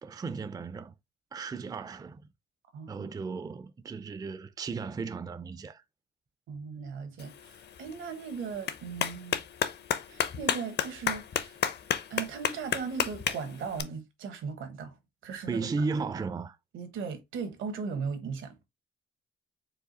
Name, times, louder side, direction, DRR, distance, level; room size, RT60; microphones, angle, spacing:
voice 1, 0.0-0.9 1.3-2.2 2.9-5.8 15.5-16.6, right 4 dB, 20° right, 0.4 m, -35 dB
voice 2, 2.7-3.1 6.5-9.4 10.1-11.6 12.1-15.0 15.2-15.7 16.7-18.5, right 5 dB, 80° right, 1.3 m, -38 dB
Clapping, 7.2-13.8, left 8 dB, 55° left, 0.7 m, -33 dB
4.8 x 2.5 x 4.0 m
cardioid pair, 90°, 20 cm